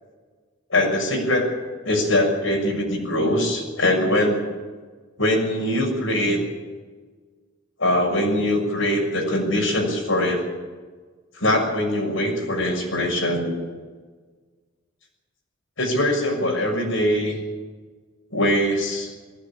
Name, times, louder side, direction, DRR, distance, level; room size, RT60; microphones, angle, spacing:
voice 1, 0.7-1.4 1.8-4.4 5.2-6.4 7.8-10.4 11.4-13.6 15.8-17.4 18.3-19.1, left 1 dB, 85° left, 1 dB, 6.6 m, -22 dB
20.0 x 16.0 x 8.8 m, 1.4 s
head